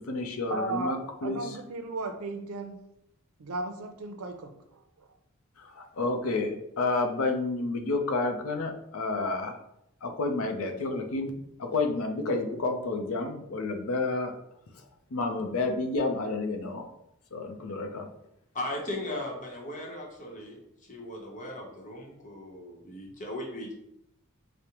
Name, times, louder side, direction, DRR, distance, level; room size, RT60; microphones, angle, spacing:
voice 1, 0.0-1.5 5.6-9.6 10.0-14.4 15.1-16.8 17.3-18.1, left 3 dB, 75° left, 4 dB, 0.5 m, -30 dB
voice 2, 0.5-0.9 1.2-2.8 3.4-4.5, right 2 dB, 85° right, 6 dB, 0.5 m, -34 dB
voice 3, 18.5-23.7, left 1 dB, 35° left, -1 dB, 0.8 m, -37 dB
4.9 x 2.1 x 2.9 m, 0.79 s
head